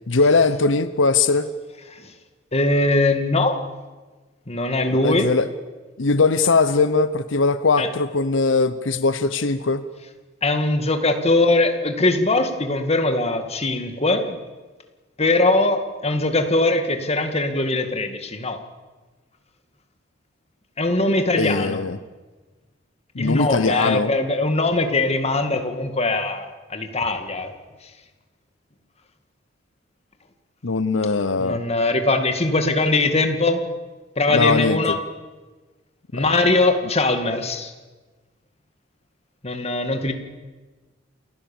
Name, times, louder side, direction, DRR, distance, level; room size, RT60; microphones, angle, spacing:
voice 1, 0.1-1.5 4.9-5.5 6.0-9.8 21.3-22.0 23.1-24.1 30.6-31.6 34.3-35.0 36.1-36.4, left 3 dB, 85° left, 12 dB, 0.9 m, -20 dB
voice 2, 2.5-3.6 4.5-5.3 7.8-7.9 10.4-14.4 15.2-18.6 20.8-21.8 23.2-27.5 31.4-33.7 34.2-35.0 36.1-37.7 39.4-40.1, left 2 dB, 35° left, 7 dB, 2.0 m, -21 dB
28.0 x 15.5 x 7.2 m, 1.3 s
head